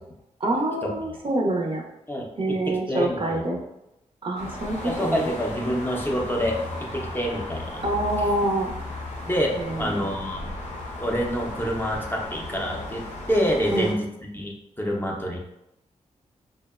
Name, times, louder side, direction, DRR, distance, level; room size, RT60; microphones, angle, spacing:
voice 1, 0.4-1.8 2.4-3.6 4.2-5.3 7.8-8.7 9.6-10.1 13.7-14.0, right 2 dB, 40° right, 0 dB, 0.4 m, -26 dB
voice 2, 2.7-3.4 4.8-7.8 9.3-10.5 11.0-14.1 14.3-15.4, equal, 15° left, -1 dB, 0.5 m, -27 dB
sound 1, 4.4-13.9, left 2 dB, 60° left, 0.6 m, -36 dB
2.7 x 2.0 x 2.3 m, 0.87 s
cardioid pair, 80°, 13 cm